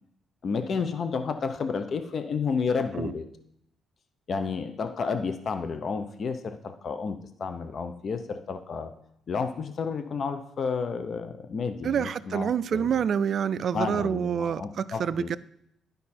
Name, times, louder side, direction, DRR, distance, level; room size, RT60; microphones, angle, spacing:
voice 1, 0.4-3.3 4.3-8.9 9.3-12.9 13.7-15.3, left 5 dB, 50° left, 9 dB, 0.7 m, -31 dB
voice 2, 11.8-15.4, right 8 dB, 55° right, 15 dB, 0.3 m, -27 dB
11.0 x 5.3 x 4.3 m, 0.73 s
cardioid pair, 90°, 0 cm